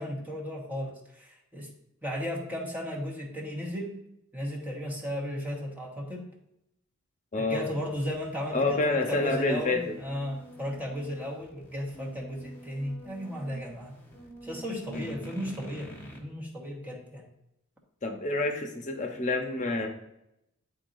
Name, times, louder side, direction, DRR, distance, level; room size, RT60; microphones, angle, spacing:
voice 1, 0.0-1.7 2.0-3.9 4.3-6.3 7.4-14.0 14.4-15.9 16.2-17.3, equal, 10° right, -2 dB, 1.1 m, -35 dB
voice 2, 7.3-7.6 8.5-9.8 14.9-15.1 18.0-19.9, left 2 dB, 35° left, 4 dB, 0.9 m, -28 dB
sound 1, 7.7-16.2, right 1 dB, 10° left, 1.3 m, -47 dB
10.5 x 4.0 x 2.6 m, 0.82 s
head